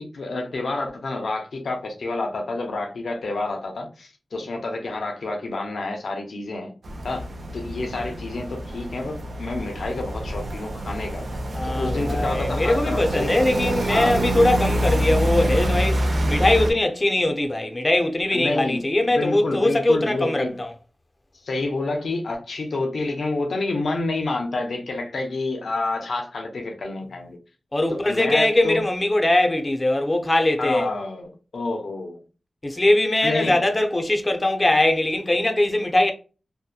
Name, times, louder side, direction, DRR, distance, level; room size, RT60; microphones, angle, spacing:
voice 1, 0.0-6.7 7.0-7.3 7.5-11.2 11.6-13.3 13.9-14.2 18.3-18.8 19.1-20.6 21.4-27.4 27.9-28.8 30.6-31.2 31.5-32.2 33.2-33.6, left 2 dB, 85° left, 0.5 m, -28 dB
sound 1, 6.8-16.7, right 1 dB, 65° right, 0.5 m, -26 dB
voice 2, 11.5-20.7 27.7-30.9 32.6-36.1, left 1 dB, 30° left, 0.5 m, -21 dB
2.7 x 2.1 x 2.3 m
wide cardioid pair, 95°, 0 cm